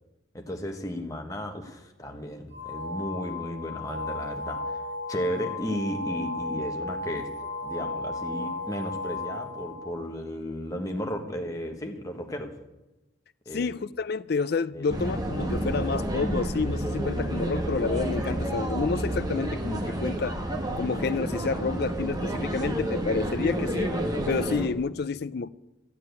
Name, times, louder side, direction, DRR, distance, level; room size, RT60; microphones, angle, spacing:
voice 1, 0.3-4.8 5.1-7.3 7.6-12.5 13.4-13.7 14.7-15.2, equal, 15° left, 1.3 m, -34 dB
sound 1, 2.5-10.1, left 2 dB, 65° right, 3.6 m, -34 dB
voice 2, 13.5-20.4 20.8-23.9 24.3-25.5, left 4 dB, 50° left, 0.4 m, -29 dB
sound 2, 14.9-24.7, right 1 dB, 20° right, 1.4 m, -30 dB
13.5 x 7.7 x 9.3 m
head